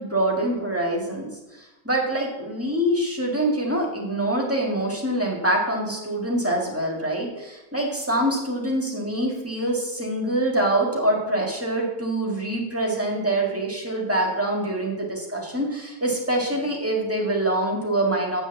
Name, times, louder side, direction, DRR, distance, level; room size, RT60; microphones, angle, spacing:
voice 1, 0.0-18.4, right 1 dB, 5° right, -1 dB, 1.6 m, -25 dB
7.9 x 6.2 x 7.2 m, 1.0 s
omnidirectional pair, 2.4 m